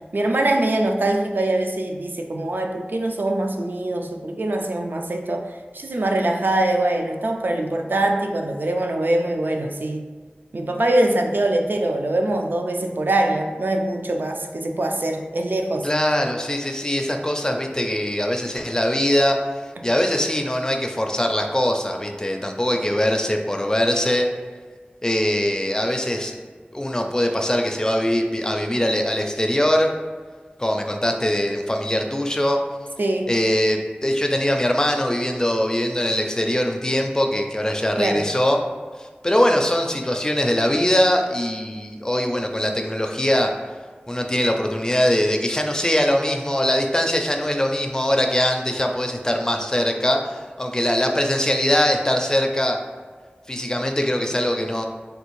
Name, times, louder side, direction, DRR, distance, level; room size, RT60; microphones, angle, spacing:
voice 1, 0.1-10.1 10.5-15.9 19.8-19.9 33.0-33.4 38.0-38.3, right 1 dB, 65° right, 3 dB, 0.3 m, -23 dB
voice 2, 15.8-24.3 25.0-26.3 26.7-29.9 30.6-32.6 33.3-38.6 39.0-43.6 44.1-52.8 53.5-54.8, left 1 dB, 20° left, 3 dB, 0.4 m, -22 dB
3.3 x 2.4 x 3.1 m, 1.5 s
wide cardioid pair, 45°, 4 cm